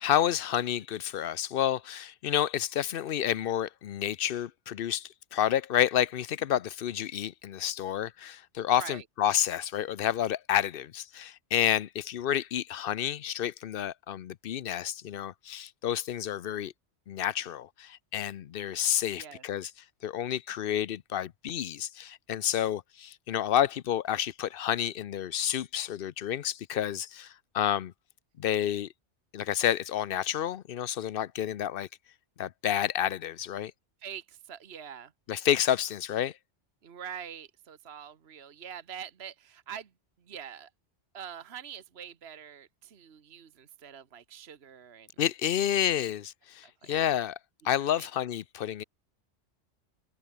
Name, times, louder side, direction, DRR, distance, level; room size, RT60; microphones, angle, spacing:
voice 1, 0.0-16.7 17.1-19.7 20.0-27.9 28.4-28.9 29.3-31.9 32.4-33.7 35.3-36.3 45.2-47.4 47.6-48.8, left 10 dB, 60° left, 0.7 m, -30 dB
voice 2, 34.0-35.1 36.8-39.9 40.3-40.7 41.1-45.1 46.8-46.9 48.0-48.1, right 8 dB, 60° right, 1.5 m, -44 dB
omnidirectional pair, 1.2 m